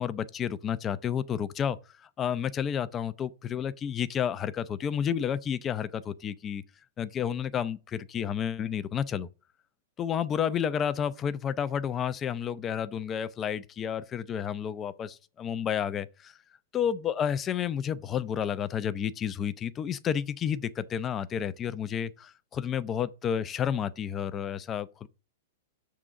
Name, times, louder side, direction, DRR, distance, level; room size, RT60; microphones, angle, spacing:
voice 1, 0.0-6.6 7.0-9.3 10.0-16.4 16.7-25.1, left 8 dB, 25° left, 0.5 m, -31 dB
6.7 x 3.7 x 6.3 m
hypercardioid pair, 120°, 0 cm